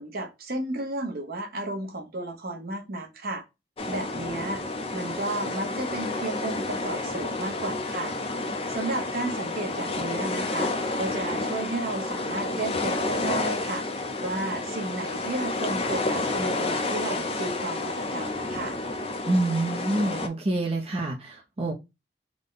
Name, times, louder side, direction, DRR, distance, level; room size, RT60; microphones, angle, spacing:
voice 1, 0.0-3.4 3.9-4.6 4.9-8.1 8.7-18.8, right 2 dB, 55° right, 0.9 m, -33 dB
sound 1, 3.8-20.3, left 2 dB, 35° left, 0.5 m, -30 dB
voice 2, 19.2-21.7, right 2 dB, 35° right, 0.5 m, -27 dB
3.5 x 2.1 x 3.8 m
head